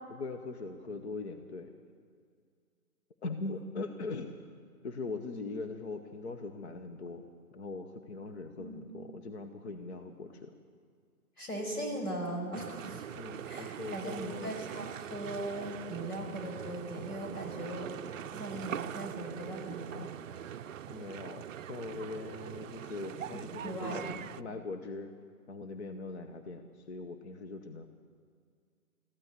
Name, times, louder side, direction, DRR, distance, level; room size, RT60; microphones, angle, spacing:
voice 1, 0.1-1.7 3.2-4.4 4.8-7.2 7.5-10.5 13.1-14.6 20.9-25.1 25.5-27.9, left 3 dB, 50° left, 7 dB, 1.0 m, -41 dB
voice 2, 8.5-8.9 11.4-13.0 13.4-20.1 23.3-24.2, right 1 dB, 90° left, 1 dB, 5.8 m, -39 dB
sound 1, 12.5-24.4, right 10 dB, 60° right, 0.5 m, -42 dB
14.5 x 12.0 x 8.2 m, 2.2 s
hypercardioid pair, 160°, 44 cm